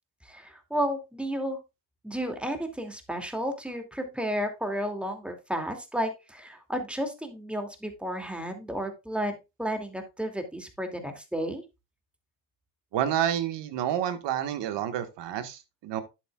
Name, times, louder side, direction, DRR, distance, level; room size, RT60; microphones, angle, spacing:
voice 1, 0.2-1.6 2.0-11.6, equal, ahead, 2.6 m, -32 dB
voice 2, 12.9-16.0, right 10 dB, 60° right, 1.7 m, -29 dB
11.0 x 7.9 x 2.4 m
supercardioid pair, 80°, 47 cm